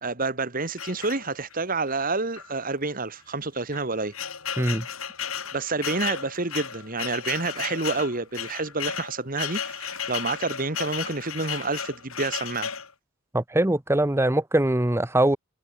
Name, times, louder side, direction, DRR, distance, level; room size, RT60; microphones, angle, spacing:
voice 1, 0.0-4.1 5.5-12.7, right 3 dB, 40° right, 2.1 m, -29 dB
sound 1, 0.8-1.6 2.4-2.5 2.8-2.9 3.6-12.9, left 8 dB, 80° left, 6.7 m, -34 dB
voice 2, 13.3-15.4, right 1 dB, 10° right, 0.8 m, -22 dB
head